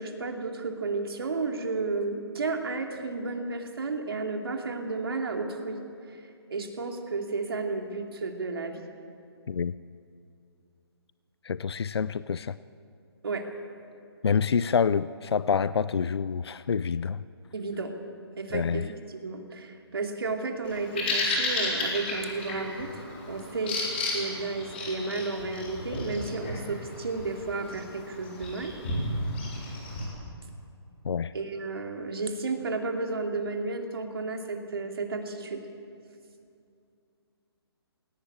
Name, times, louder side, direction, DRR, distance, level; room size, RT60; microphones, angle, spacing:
voice 1, 0.0-5.8 6.1-6.2 6.5-8.8 13.2-13.5 17.5-17.9 18.4-23.8 24.1-28.7 31.3-35.7, right 3 dB, 60° right, 3 dB, 2.7 m, -32 dB
voice 2, 11.5-12.5 14.2-17.2 18.5-18.9 31.0-31.3, left 6 dB, 70° left, 16 dB, 0.5 m, -27 dB
Bird vocalization bird call bird song, 20.7-30.1, left 2 dB, 25° left, 4.3 m, -33 dB
22.5 x 17.0 x 8.6 m, 2.5 s
hypercardioid pair, 180°, 14 cm